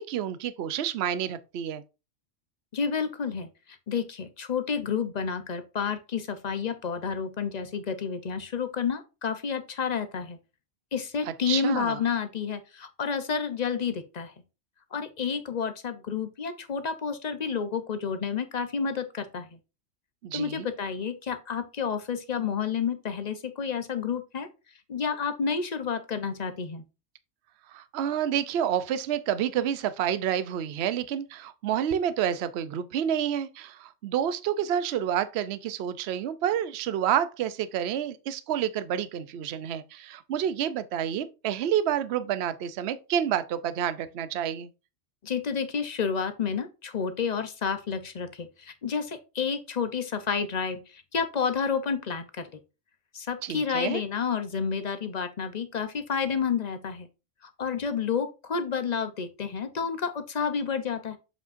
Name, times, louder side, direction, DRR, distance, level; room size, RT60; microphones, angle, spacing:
voice 1, 0.0-1.8 11.3-12.0 20.2-20.7 27.7-44.7 53.4-54.0, right 9 dB, 60° right, 0.8 m, -29 dB
voice 2, 2.7-3.5 3.9-10.4 10.9-14.3 14.9-19.6 20.3-24.5 24.9-26.8 45.2-52.5 53.1-57.1 57.6-61.2, left 6 dB, 40° left, 0.8 m, -30 dB
7.4 x 5.5 x 2.6 m
omnidirectional pair, 1.3 m